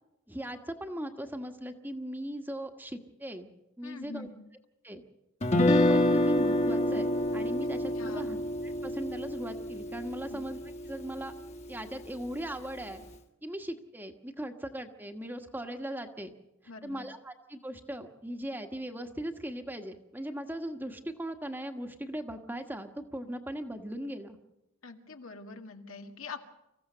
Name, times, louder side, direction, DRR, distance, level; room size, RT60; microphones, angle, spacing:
voice 1, 0.3-3.5 3.8-4.3 4.8-5.0 5.6-8.4 8.6-10.6 10.8-11.3 11.7-13.0 13.4-16.3 16.8-24.4, right 1 dB, 10° right, 6 dB, 1.3 m, -39 dB
voice 2, 3.8-4.4 8.0-8.3 10.3-10.4 16.7-17.0 24.8-26.4, left 4 dB, 80° left, 5 dB, 1.9 m, -44 dB
Guitar, 5.4-11.5, left 1 dB, 30° left, 1.5 m, -28 dB
26.0 x 15.5 x 6.8 m, 0.88 s
head